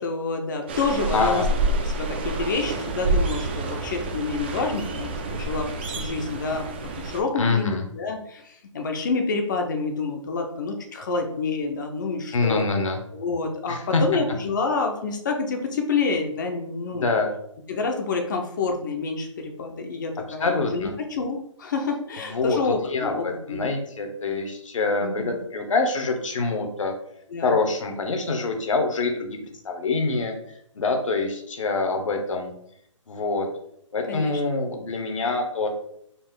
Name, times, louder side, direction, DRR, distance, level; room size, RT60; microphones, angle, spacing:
voice 1, 0.0-1.4 2.0-6.7 7.0-12.6 13.1-17.1 17.7-23.7 25.0-25.4 27.3-27.5 34.1-34.4, left 4 dB, 35° left, 4 dB, 0.5 m, -28 dB
sound 1, 0.7-7.2, right 2 dB, 20° right, 0.3 m, -28 dB
voice 2, 1.1-1.5 7.4-7.8 12.3-13.0 13.7-14.0 16.9-17.3 20.4-20.9 22.2-26.9 27.4-29.4 29.6-30.3 30.7-32.5 33.1-33.5 33.9-35.7, left 3 dB, 75° left, 4 dB, 1.0 m, -25 dB
4.2 x 2.4 x 3.6 m, 0.71 s
hypercardioid pair, 155°, 17 cm